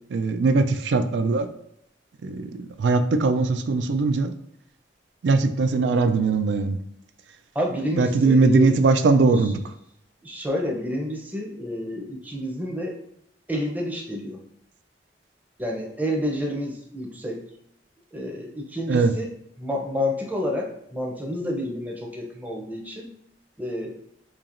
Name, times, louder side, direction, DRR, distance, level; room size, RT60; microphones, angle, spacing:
voice 1, 0.1-1.5 2.2-4.3 5.2-6.8 7.9-9.6 18.9-19.1, right 3 dB, 85° right, 9 dB, 0.4 m, -20 dB
voice 2, 7.5-8.8 10.2-13.0 13.5-14.4 15.6-17.4 18.1-19.2 19.6-23.1 23.6-24.0, left 1 dB, 10° right, 0 dB, 0.6 m, -29 dB
4.5 x 2.8 x 2.5 m, 0.73 s
head